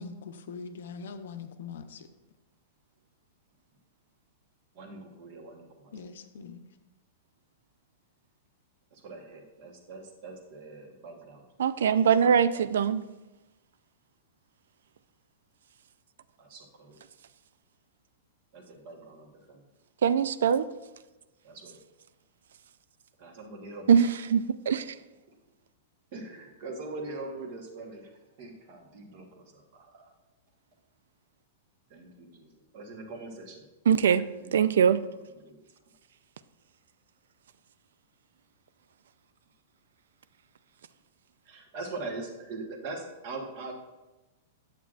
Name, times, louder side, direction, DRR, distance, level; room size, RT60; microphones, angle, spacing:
voice 1, 0.0-2.1 5.9-6.6, left 5 dB, 70° left, 9 dB, 0.6 m, -42 dB
voice 2, 4.7-5.9 8.9-11.5 12.5-12.6 16.4-17.0 18.5-19.6 21.4-21.8 23.2-24.1 26.1-30.1 31.9-33.6 34.2-34.5 35.3-35.6 41.4-43.7, right 3 dB, 35° right, 3 dB, 1.1 m, -42 dB
voice 3, 11.6-13.0 20.0-20.6 23.9-25.0 33.9-34.3 34.5-35.0, right 7 dB, 85° right, 14 dB, 0.3 m, -22 dB
9.2 x 7.3 x 2.4 m, 1.1 s
supercardioid pair, 180°, 0 cm